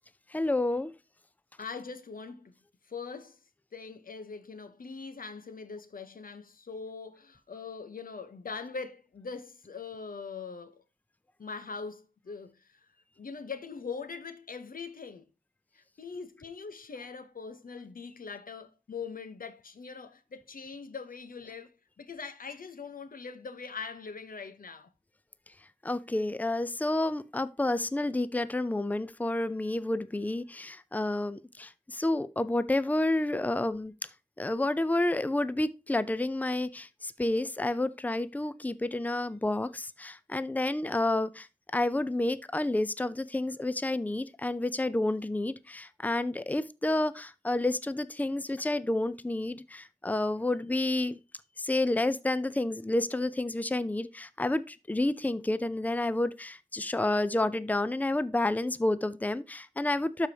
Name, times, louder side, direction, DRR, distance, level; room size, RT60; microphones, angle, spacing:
voice 1, 0.3-0.9 25.8-33.9 34.4-41.5 41.7-51.2 51.6-60.3, left 2 dB, 10° left, 0.5 m, -30 dB
voice 2, 1.6-2.5 2.9-3.4 3.7-10.8 11.4-12.9 13.2-15.3 15.7-24.9, left 5 dB, 85° left, 0.9 m, -42 dB
12.0 x 4.9 x 2.8 m
wide cardioid pair, 70°, 14 cm